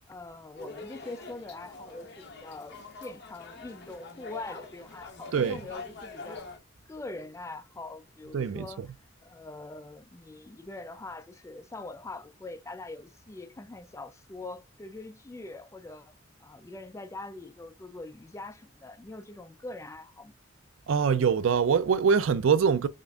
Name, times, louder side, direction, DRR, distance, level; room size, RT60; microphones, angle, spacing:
voice 1, 0.1-6.5 6.9-8.9 9.2-16.1 16.4-20.3, left 2 dB, 15° left, 0.3 m, -43 dB
sound 1, 0.6-6.6, left 3 dB, 60° left, 1.0 m, -45 dB
voice 2, 8.3-8.9 20.9-22.9, right 6 dB, 75° right, 0.4 m, -24 dB
5.1 x 2.5 x 2.3 m
head